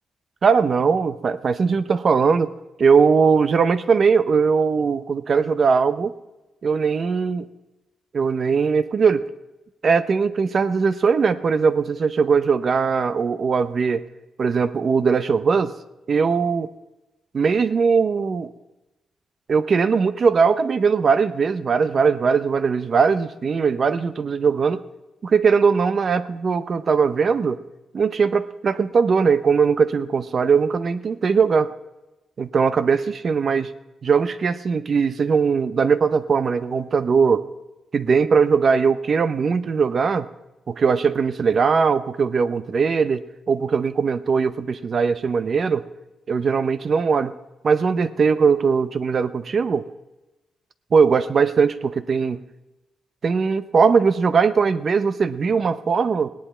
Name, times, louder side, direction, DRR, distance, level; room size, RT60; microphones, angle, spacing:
voice 1, 0.4-2.5 2.8-6.1 6.6-7.4 8.1-9.3 9.8-14.1 14.4-15.7 16.1-16.7 17.3-18.5 19.5-24.8 25.2-27.6 27.9-31.7 32.4-33.7 34.0-37.5 37.9-40.3 40.7-45.8 46.3-47.3 47.6-49.8 50.9-52.4 53.2-56.3, right 5 dB, 40° right, 13 dB, 0.6 m, -20 dB
18.0 x 10.5 x 4.3 m, 1.0 s
wide cardioid pair, 180°, 0 cm